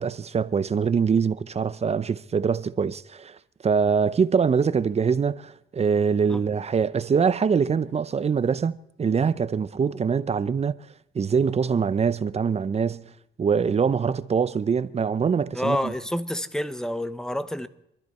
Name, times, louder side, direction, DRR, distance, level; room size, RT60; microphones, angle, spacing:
voice 1, 0.0-3.4 3.6-8.7 9.0-10.8 11.1-13.1 13.4-15.9, right 6 dB, 30° right, 0.6 m, -23 dB
voice 2, 15.5-17.7, left 1 dB, 5° left, 0.9 m, -28 dB
24.5 x 13.0 x 4.3 m
cardioid pair, 90°, 20 cm